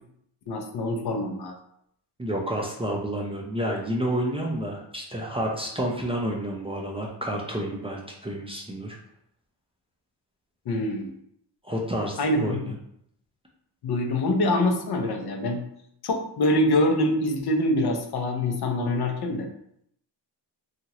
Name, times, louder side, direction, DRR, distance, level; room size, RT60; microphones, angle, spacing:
voice 1, 0.5-1.5 10.7-11.1 12.2-12.7 13.8-15.6 16.0-19.5, left 1 dB, 60° left, 3 dB, 0.6 m, -25 dB
voice 2, 2.2-9.0 11.6-12.8, right 1 dB, 15° right, -1 dB, 0.4 m, -30 dB
2.9 x 2.4 x 2.8 m, 0.71 s
cardioid pair, 95°, 44 cm